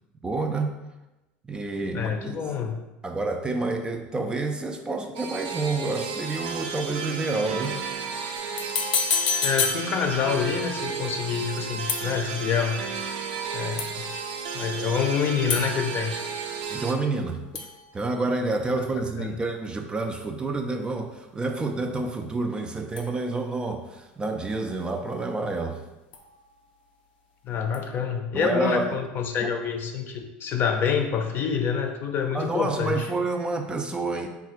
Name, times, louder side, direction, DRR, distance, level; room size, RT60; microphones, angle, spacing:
voice 1, 0.2-0.8 1.4-2.4 3.0-7.8 16.7-17.7 17.9-25.8 28.3-28.9 29.4-29.5 32.3-34.3, right 3 dB, 20° right, 5 dB, 0.4 m, -29 dB
voice 2, 1.9-2.7 9.4-12.8 13.5-14.1 14.5-16.1 19.2-19.3 27.4-33.1, left 6 dB, 45° left, 5 dB, 0.6 m, -27 dB
sound 1, 5.2-16.9, right 5 dB, 75° right, 0.5 m, -33 dB
sound 2, 8.4-10.5 11.9-12.6 13.8-14.3 15.5-17.3 17.6-18.7 23.0-23.7 26.1-26.8 27.7-27.8, left 6 dB, 90° left, 0.5 m, -31 dB
3.9 x 2.3 x 4.4 m, 1.0 s
supercardioid pair, 100°, 5 cm